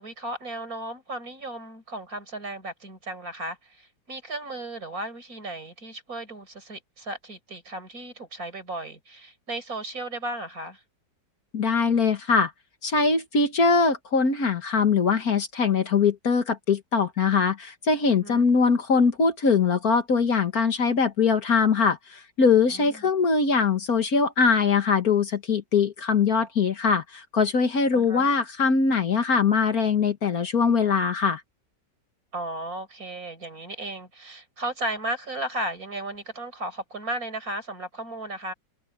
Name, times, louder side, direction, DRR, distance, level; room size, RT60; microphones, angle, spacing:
voice 1, 0.0-10.8 18.2-18.5 22.7-23.1 27.9-28.3 32.3-38.5, right 1 dB, 50° right, 5.2 m, -35 dB
voice 2, 11.5-12.5 12.8-31.4, left 5 dB, 55° left, 2.0 m, -22 dB
omnidirectional pair, 1.9 m